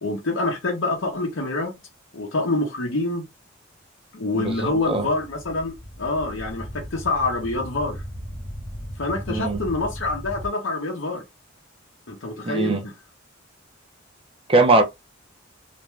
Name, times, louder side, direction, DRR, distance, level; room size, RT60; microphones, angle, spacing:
voice 1, 0.0-1.8 2.1-3.3 4.1-8.0 9.0-11.2 12.1-12.8, left 2 dB, 65° left, 0.7 m, -26 dB
voice 2, 4.3-5.1 9.3-9.6 12.4-12.9 14.5-14.8, right 2 dB, 30° right, 0.6 m, -20 dB
sound 1, 4.5-10.5, equal, 20° left, 0.6 m, -37 dB
2.5 x 2.2 x 3.1 m
head